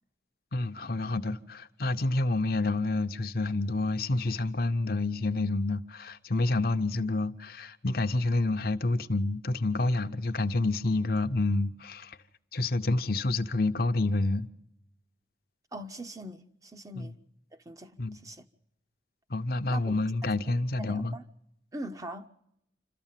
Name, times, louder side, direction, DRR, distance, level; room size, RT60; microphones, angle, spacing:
voice 1, 0.5-12.2 12.5-14.5 17.0-17.1 18.0-18.2 19.3-21.2, left 2 dB, 50° left, 0.7 m, -28 dB
voice 2, 15.7-17.1 17.5-18.5 19.7-20.0 20.2-21.2 21.7-22.3, right 1 dB, 20° right, 0.7 m, -42 dB
27.0 x 13.5 x 7.4 m
head